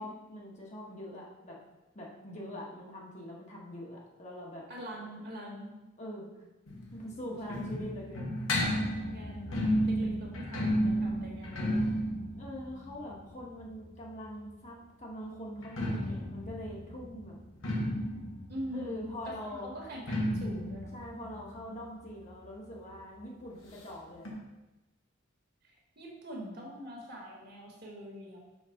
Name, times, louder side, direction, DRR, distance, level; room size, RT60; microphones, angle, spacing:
voice 1, 0.0-1.6 1.9-4.6 6.0-6.3 6.9-8.3 12.3-17.4 18.7-19.7 20.9-24.3, equal, 35° left, -3 dB, 1.3 m, -43 dB
voice 2, 4.7-5.7 9.1-12.0 18.5-20.9 25.6-28.4, equal, 50° right, -1 dB, 1.6 m, -43 dB
sound 1, 6.7-14.4 15.5-22.9 23.1-23.2 23.5-23.6 24.2-24.3, equal, 80° left, 1.6 m, -33 dB
5.8 x 4.1 x 5.8 m, 1.1 s
head